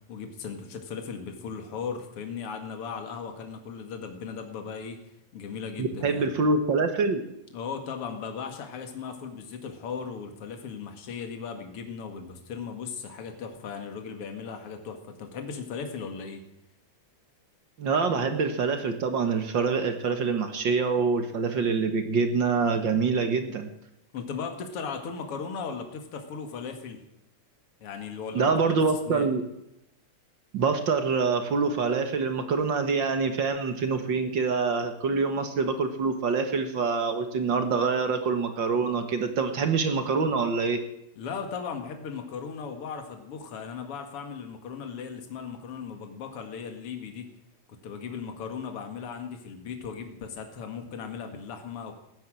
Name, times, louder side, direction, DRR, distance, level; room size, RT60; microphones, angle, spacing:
voice 1, 0.1-5.0 5.3-6.3 7.5-16.4 24.1-27.0 27.8-29.3 41.2-47.3 47.7-51.9, left 6 dB, 50° left, 5 dB, 2.7 m, -37 dB
voice 2, 5.8-7.2 17.8-23.7 28.3-29.4 30.5-40.8, right 4 dB, 50° right, 7 dB, 1.7 m, -25 dB
18.0 x 10.5 x 7.6 m, 0.84 s
omnidirectional pair, 3.5 m